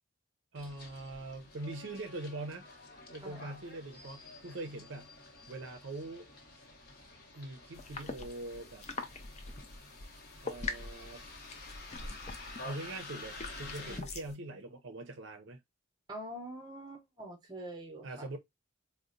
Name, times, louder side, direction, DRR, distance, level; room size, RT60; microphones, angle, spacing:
voice 1, 0.5-2.8 3.1-5.1 5.5-6.3 7.3-8.9 10.4-11.2 12.6-15.6 18.0-18.4, right 2 dB, 65° right, 0.5 m, -43 dB
Bus, 0.6-14.0, left 2 dB, 50° left, 0.8 m, -50 dB
sound 1, 7.7-14.3, left 3 dB, 30° left, 0.4 m, -44 dB
voice 2, 16.1-18.3, right 1 dB, 20° right, 0.7 m, -45 dB
3.9 x 2.1 x 2.5 m
head